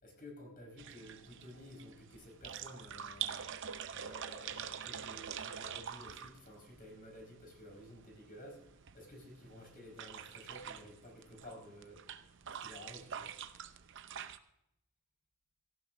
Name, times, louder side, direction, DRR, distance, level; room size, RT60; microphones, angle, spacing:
voice 1, 0.0-3.4 3.9-12.0 12.6-13.3, left 1 dB, 40° left, 1 dB, 4.8 m, -53 dB
sound 1, 0.8-14.4, right 8 dB, 60° right, 0.7 m, -46 dB
17.5 x 15.0 x 2.6 m, 0.81 s
head